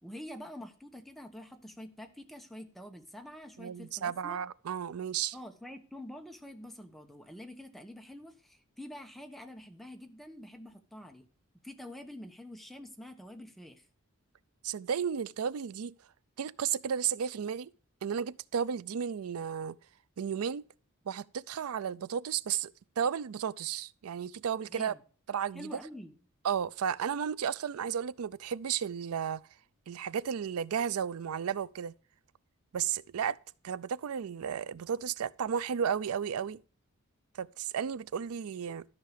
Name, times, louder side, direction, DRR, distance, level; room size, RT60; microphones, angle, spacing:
voice 1, 0.0-4.4 5.3-11.3 11.6-13.8 24.7-25.0 25.5-26.2, left 1 dB, ahead, 1.1 m, -47 dB
voice 2, 3.6-5.4 14.6-15.9 16.4-17.7 18.0-19.8 20.2-20.7 21.1-24.9 25.3-25.7 26.4-29.4 29.9-31.9 32.7-33.4 33.6-36.6 37.4-38.9, right 8 dB, 85° right, 0.4 m, -33 dB
13.0 x 5.7 x 5.0 m
head